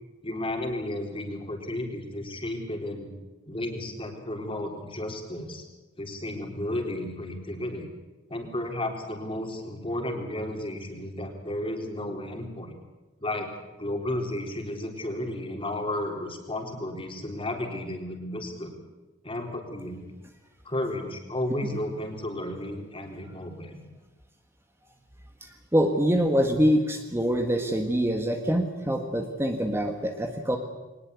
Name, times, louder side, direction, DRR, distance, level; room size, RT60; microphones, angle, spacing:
voice 1, 0.2-3.1 3.5-5.7 6.0-7.9 8.3-12.7 13.2-13.5 13.8-18.8 19.2-20.0 20.6-23.8, left 1 dB, 25° left, 3 dB, 3.9 m, -33 dB
voice 2, 25.4-30.6, equal, 15° right, 4 dB, 1.7 m, -25 dB
22.0 x 19.5 x 8.3 m, 1.2 s
head